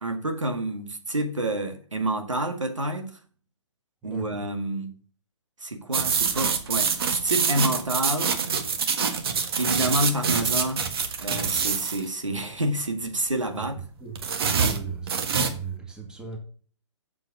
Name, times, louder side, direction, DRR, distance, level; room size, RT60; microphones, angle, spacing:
voice 1, 0.0-3.2 4.0-4.9 5.6-8.4 9.6-10.8 11.2-13.8, right 1 dB, 80° right, 1.9 m, -28 dB
voice 2, 4.0-4.4 13.5-13.6 14.0-14.1 14.5-16.4, right 6 dB, 5° right, 1.8 m, -38 dB
sound 1, 5.9-12.0 14.1-15.6, right 6 dB, 50° right, 1.6 m, -25 dB
7.8 x 7.2 x 5.2 m
figure-of-eight pair, 125°, 16 cm